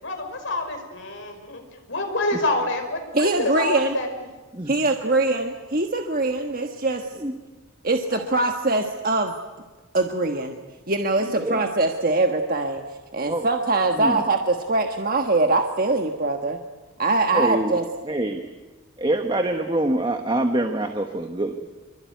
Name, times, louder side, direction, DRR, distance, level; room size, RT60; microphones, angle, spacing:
voice 1, 0.0-1.6 1.9-4.1, left 2 dB, 60° left, 4 dB, 5.3 m, -27 dB
voice 2, 3.1-4.0 4.7-7.2 7.8-9.4 9.9-10.6 10.9-12.8 13.1-16.6 17.0-17.8, right 2 dB, 40° right, 4 dB, 1.4 m, -22 dB
voice 3, 17.3-17.8 18.1-18.4 19.0-21.5, right 1 dB, 20° right, 5 dB, 1.3 m, -25 dB
26.5 x 23.5 x 9.4 m, 1.2 s
head